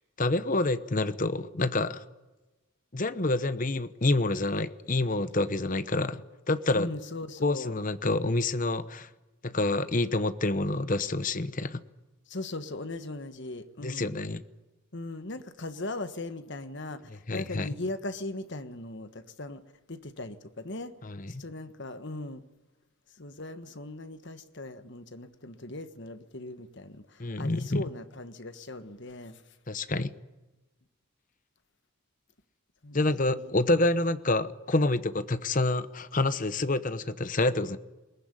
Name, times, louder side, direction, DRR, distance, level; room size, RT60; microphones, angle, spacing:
voice 1, 0.2-2.0 2.9-6.2 6.5-6.9 7.4-9.1 9.4-11.8 13.8-14.4 17.3-17.7 21.0-21.3 27.2-27.8 29.7-30.1 32.9-37.8, left 2 dB, 35° left, 0.9 m, -27 dB
voice 2, 6.7-7.7 12.3-14.2 14.9-19.6 19.9-20.9 21.3-22.4 23.2-29.4 32.8-33.5, left 2 dB, 55° left, 1.4 m, -39 dB
21.5 x 19.5 x 9.9 m
head